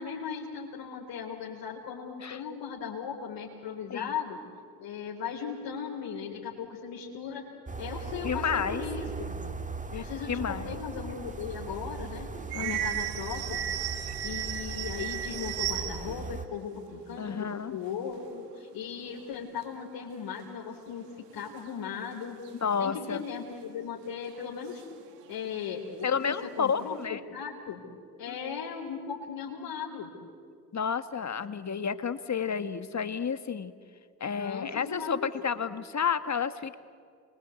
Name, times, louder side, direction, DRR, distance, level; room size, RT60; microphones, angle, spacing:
voice 1, 0.0-4.4 4.8-7.4 7.8-9.4 9.9-12.3 12.6-13.7 14.2-21.0 21.3-22.3 22.8-24.8 25.3-27.8 28.2-30.1 34.4-35.3, left 7 dB, 65° left, -2 dB, 4.1 m, -37 dB
sound 1, 7.7-16.5, right 3 dB, 15° right, 1.8 m, -39 dB
voice 2, 8.2-8.8 9.9-10.7 12.5-12.9 17.2-17.8 22.6-23.2 26.0-27.2 28.3-28.4 30.7-33.7 34.2-36.8, left 6 dB, 35° left, 11 dB, 1.7 m, -31 dB
sound 2, 11.3-16.3 16.6-16.7 16.9-18.3 18.7-18.8 19.1-19.6 20.4-20.5 21.1-21.9 22.5-22.6 23.7-23.8 24.3-25.7 26.0-27.0, right 11 dB, 90° right, 1.5 m, -37 dB
29.0 x 23.5 x 8.4 m, 2.2 s
hypercardioid pair, 50°, 46 cm